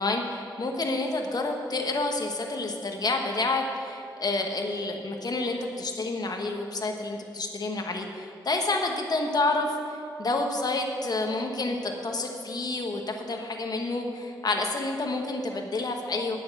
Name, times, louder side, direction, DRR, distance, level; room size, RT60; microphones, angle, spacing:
voice 1, 0.0-16.4, left 2 dB, 55° left, 3 dB, 1.4 m, -29 dB
9.6 x 6.5 x 7.9 m, 2.3 s
cardioid pair, 70°, 8 cm